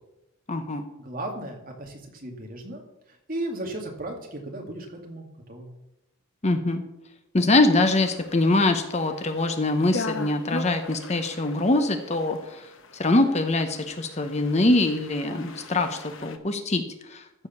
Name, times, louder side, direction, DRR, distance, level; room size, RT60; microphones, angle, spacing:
voice 1, 0.5-0.9 6.4-6.8 7.3-17.2, left 2 dB, 30° left, 7 dB, 0.8 m, -23 dB
voice 2, 1.0-2.8 3.1-5.7, right 1 dB, 40° right, 1 dB, 2.2 m, -35 dB
sound 1, 7.8-16.4, left 3 dB, 60° left, 1.0 m, -40 dB
14.5 x 5.0 x 7.1 m, 0.89 s
head